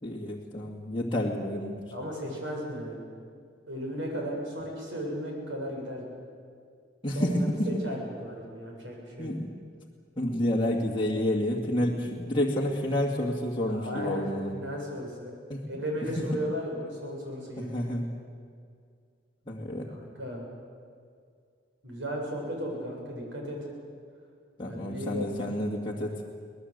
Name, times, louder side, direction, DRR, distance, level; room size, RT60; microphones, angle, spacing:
voice 1, 0.0-1.8 7.0-7.8 9.2-9.5 10.2-14.6 15.5-15.8 17.6-18.1 19.5-19.9 24.6-26.2, left 1 dB, 25° left, -4 dB, 2.2 m, -29 dB
voice 2, 1.9-3.0 3.7-6.1 7.1-9.3 13.7-14.3 14.5-15.3 15.7-17.8 19.9-20.4 21.8-23.6 24.7-25.3, equal, 80° right, -1 dB, 7.4 m, -35 dB
24.0 x 19.0 x 8.1 m, 2.2 s
head